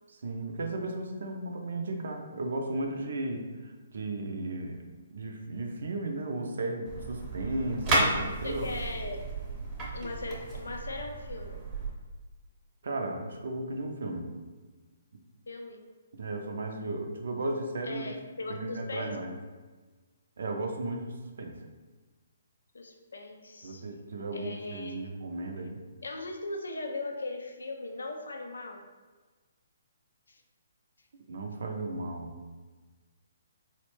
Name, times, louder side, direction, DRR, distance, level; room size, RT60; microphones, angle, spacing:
voice 1, 0.1-8.7 12.8-14.3 16.2-18.1 18.5-19.3 20.4-21.6 23.6-25.8 31.1-32.4, right 2 dB, 65° right, 3 dB, 0.5 m, -35 dB
sound 1, 6.9-11.9, right 2 dB, 25° right, 0.8 m, -32 dB
voice 2, 8.4-9.2 9.9-11.6 15.5-15.8 17.8-19.1 22.7-24.0 24.3-25.1 26.0-28.8 30.3-30.4, left 2 dB, 80° left, 3 dB, 0.4 m, -39 dB
4.1 x 2.1 x 3.0 m, 1.3 s
figure-of-eight pair, 135°, 0 cm